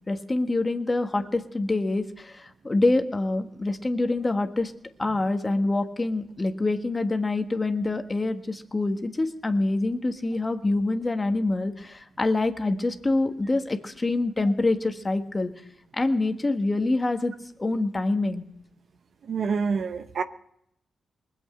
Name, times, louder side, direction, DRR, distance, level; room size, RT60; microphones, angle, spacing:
voice 1, 0.0-4.7 5.0-15.5 15.9-17.3 17.6-18.4, left 2 dB, 30° left, 7 dB, 1.5 m, -26 dB
voice 2, 19.3-20.2, right 5 dB, 65° right, 11 dB, 0.8 m, -27 dB
20.0 x 8.2 x 7.9 m, 0.75 s
cardioid pair, 60°, 0 cm